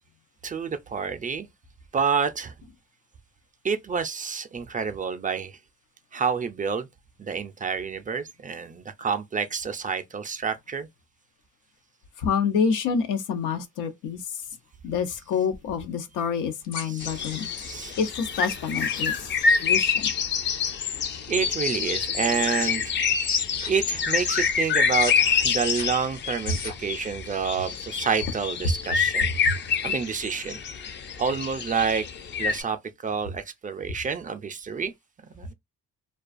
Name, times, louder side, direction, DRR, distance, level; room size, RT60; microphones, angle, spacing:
voice 1, 0.4-1.5 1.9-2.5 3.6-5.6 6.1-6.9 7.2-10.9 16.8-18.0 21.0-22.8 23.6-29.3 29.8-30.6 31.2-32.1 32.4-32.8 33.0-34.9 35.4-35.5, right 6 dB, 30° right, 0.3 m, -28 dB
voice 2, 12.2-14.2 14.8-17.5 18.0-19.1 19.6-20.1 29.5-29.6, left 6 dB, 90° left, 0.6 m, -27 dB
sound 1, 16.6-19.6 21.1-23.0 23.2-25.1 25.4-26.9, left 6 dB, 70° left, 0.9 m, -35 dB
sound 2, 17.0-32.6, left 6 dB, 40° left, 0.4 m, -27 dB
2.4 x 2.3 x 2.4 m
cardioid pair, 90°, 30 cm